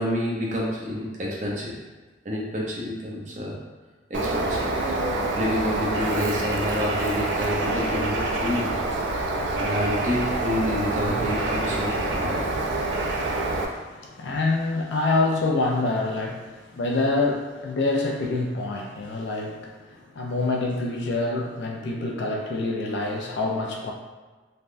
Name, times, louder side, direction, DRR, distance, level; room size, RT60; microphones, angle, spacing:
voice 1, 0.0-1.8 2.2-3.6 4.1-4.7 5.3-8.7 9.6-12.5, left 1 dB, 40° right, -4 dB, 0.6 m, -28 dB
Bird, 4.1-13.7, right 2 dB, 80° right, 0.4 m, -26 dB
voice 2, 13.7-23.9, left 2 dB, 70° left, 1 dB, 0.4 m, -26 dB
3.3 x 2.2 x 2.5 m, 1.3 s
head